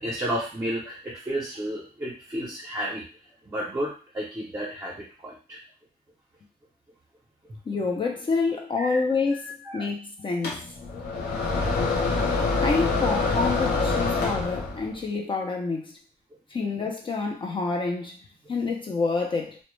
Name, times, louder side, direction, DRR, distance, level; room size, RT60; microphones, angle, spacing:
voice 1, 0.0-3.1 3.5-5.6 8.8-9.9, right 1 dB, 20° right, 0.6 m, -32 dB
voice 2, 7.7-10.6 12.6-16.0 16.5-18.2 18.5-19.6, left 4 dB, 30° left, 0.3 m, -28 dB
sound 1, 10.4-14.9, left 3 dB, 70° left, 0.6 m, -25 dB
2.0 x 2.0 x 3.0 m
cardioid pair, 130°, 17 cm